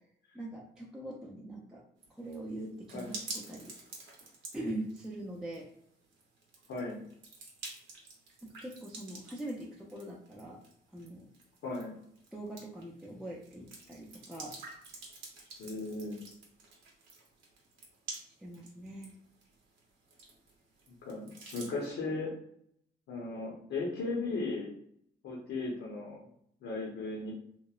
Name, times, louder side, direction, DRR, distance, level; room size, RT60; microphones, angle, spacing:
voice 1, 0.3-1.8 2.2-3.2 3.5-3.7 4.5-5.7 8.6-10.6 10.9-11.3 12.3-14.5 18.4-19.1, right 1 dB, 5° right, -4 dB, 0.4 m, -42 dB
sound 1, 2.0-21.9, right 3 dB, 85° right, 0.7 m, -50 dB
voice 2, 6.7-7.0 11.6-11.9 15.6-16.2 21.0-22.3 23.1-24.7 25.2-26.2 26.6-27.3, left 3 dB, 75° left, -3 dB, 0.6 m, -36 dB
2.9 x 2.0 x 2.3 m, 0.69 s
cardioid pair, 90°, 20 cm